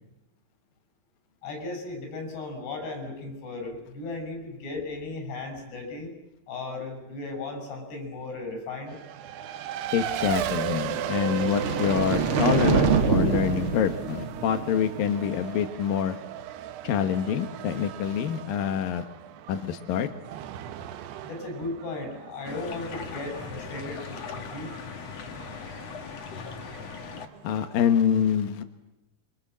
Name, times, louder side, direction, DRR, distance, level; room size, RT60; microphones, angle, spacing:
voice 1, 1.4-6.1 6.5-9.0 21.2-24.7, left 2 dB, 85° left, 4 dB, 8.0 m, -36 dB
Race car auto racing, 8.9-28.0, right 11 dB, 80° right, 3.1 m, -38 dB
voice 2, 9.9-16.2 16.8-19.0 19.5-20.1 27.4-28.6, left 8 dB, 65° left, 7 dB, 2.8 m, -26 dB
sound 1, 10.8-15.1, right 5 dB, 55° right, 1.6 m, -26 dB
sound 2, 22.4-27.3, left 5 dB, 45° left, 2.5 m, -39 dB
26.5 x 25.5 x 7.5 m, 0.95 s
omnidirectional pair, 4.7 m